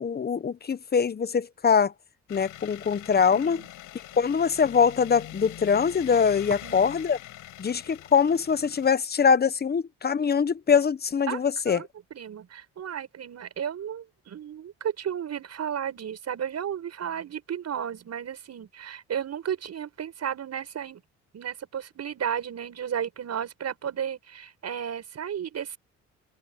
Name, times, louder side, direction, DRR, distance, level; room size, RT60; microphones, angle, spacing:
voice 1, 0.0-1.9 2.3-3.6 4.2-7.2 7.6-11.9, left 6 dB, 30° left, 1.0 m, -23 dB
sound 1, 2.3-8.9, left 14 dB, 85° left, 6.0 m, -43 dB
voice 2, 3.3-3.7 6.6-6.8 11.3-11.4 11.7-21.0 21.3-25.8, right 8 dB, 60° right, 7.0 m, -33 dB
open air
cardioid pair, 90°, 30 cm